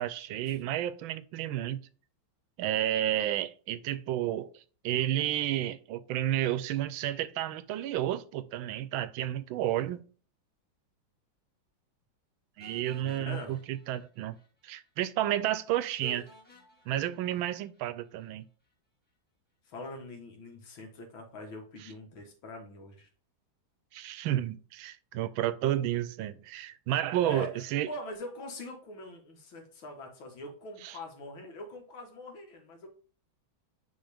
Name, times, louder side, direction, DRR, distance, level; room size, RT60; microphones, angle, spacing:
voice 1, 0.0-1.8 2.6-4.5 4.8-10.1 12.6-14.4 14.6-16.2 16.9-18.4 23.9-27.9 30.8-31.0, right 12 dB, 90° right, 1.4 m, -31 dB
sound 1, 12.6-14.5 14.8-14.9 15.2-15.3 16.0-18.3, left 1 dB, 5° left, 1.4 m, -58 dB
voice 2, 13.0-13.6 16.0-16.2 19.7-23.1 27.2-32.9, left 2 dB, 85° left, 2.3 m, -43 dB
9.4 x 3.7 x 3.4 m
omnidirectional pair, 2.1 m